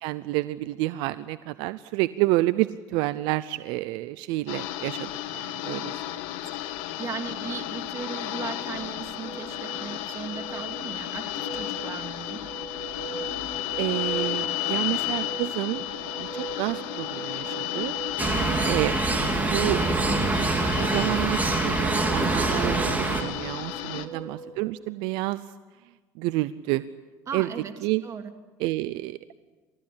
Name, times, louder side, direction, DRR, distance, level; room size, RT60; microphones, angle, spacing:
voice 1, 0.0-6.0 13.8-15.8 16.1-17.9 18.6-18.9 19.3-19.8 20.5-25.5 26.2-26.8 27.3-27.5 27.8-28.0 28.6-29.2, right 18 dB, 80° right, 15 dB, 0.6 m, -29 dB
sound 1, 4.5-24.1, left 14 dB, 85° left, 1.5 m, -33 dB
voice 2, 7.0-12.4 18.3-18.8 23.9-24.2 27.3-27.7 28.0-28.3, right 6 dB, 40° right, 6 dB, 2.7 m, -37 dB
sound 2, 8.2-24.7, right 3 dB, 55° right, 7.0 m, -40 dB
sound 3, 18.2-23.2, right 3 dB, 20° right, 3.6 m, -25 dB
29.5 x 14.5 x 8.7 m, 1.3 s
supercardioid pair, 100°, 8 cm